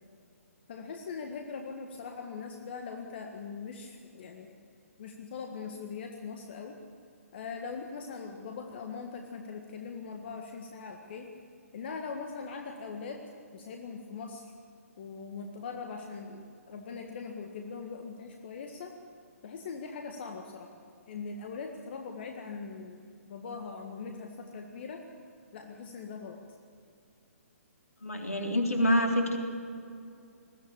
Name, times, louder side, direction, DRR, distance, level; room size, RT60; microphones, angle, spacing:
voice 1, 0.7-4.5 5.0-6.7 7.3-11.3 11.7-13.2 13.5-14.5 15.0-18.9 19.4-20.7 21.1-23.0 23.3-25.0 25.5-26.4, left 5 dB, 45° left, 3 dB, 1.7 m, -41 dB
voice 2, 28.0-29.4, equal, 75° left, 2 dB, 3.7 m, -26 dB
21.0 x 15.0 x 8.8 m, 2.4 s
figure-of-eight pair, 130°, 8 cm